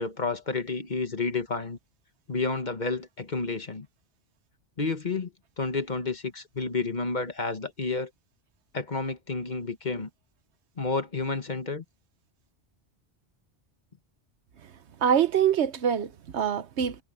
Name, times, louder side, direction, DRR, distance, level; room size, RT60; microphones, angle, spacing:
voice 1, 0.0-1.8 2.3-3.9 4.8-5.3 5.6-8.1 8.7-10.1 10.8-11.8, left 4 dB, 40° left, 1.5 m, -30 dB
voice 2, 15.0-17.0, right 8 dB, 80° right, 1.2 m, -24 dB
omnidirectional pair, 1.1 m